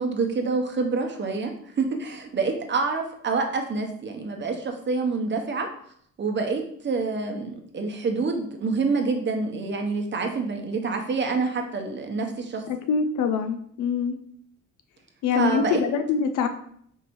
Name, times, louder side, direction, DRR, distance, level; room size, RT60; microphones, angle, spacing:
voice 1, 0.0-1.5 1.8-5.7 6.2-12.6 15.3-15.8, right 4 dB, 35° right, 4 dB, 0.7 m, -27 dB
voice 2, 12.7-14.2 15.2-16.5, left 6 dB, 85° left, 7 dB, 0.5 m, -24 dB
4.5 x 3.0 x 2.5 m, 0.65 s
cardioid pair, 90°, 30 cm